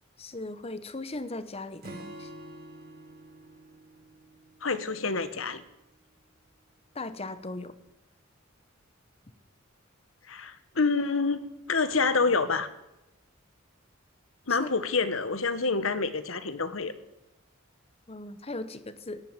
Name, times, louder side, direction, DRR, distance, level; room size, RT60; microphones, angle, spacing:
voice 1, 0.2-2.3 6.9-7.8 14.5-14.7 18.1-19.2, left 2 dB, 30° left, 13 dB, 1.0 m, -38 dB
Acoustic guitar / Strum, 1.8-5.3, right 1 dB, 50° right, 3.2 m, -47 dB
voice 2, 4.6-5.6 10.3-12.7 14.5-16.9, left 4 dB, 85° left, 13 dB, 1.3 m, -27 dB
14.5 x 11.0 x 9.0 m, 0.91 s
head